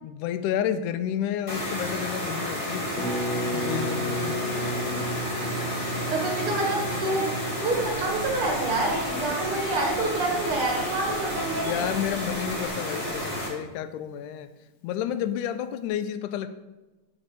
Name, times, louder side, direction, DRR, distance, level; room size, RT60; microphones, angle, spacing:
voice 1, 0.0-2.9 3.5-4.4 11.5-14.5 14.8-16.5, left 10 dB, 85° left, 11 dB, 2.1 m, -30 dB
sound 1, 1.5-13.5, equal, 30° left, 2.5 m, -31 dB
Harp, 3.0-12.6 12.8-12.9 13.1-13.4, equal, 65° left, 2.4 m, -35 dB
voice 2, 4.5-5.1 6.1-7.3 7.6-11.8, right 2 dB, 50° right, 0 dB, 2.4 m, -28 dB
sound 2, 7.6-12.7, right 1 dB, 25° right, 1.8 m, -43 dB
8.8 x 5.1 x 7.7 m, 1.1 s
omnidirectional pair, 3.5 m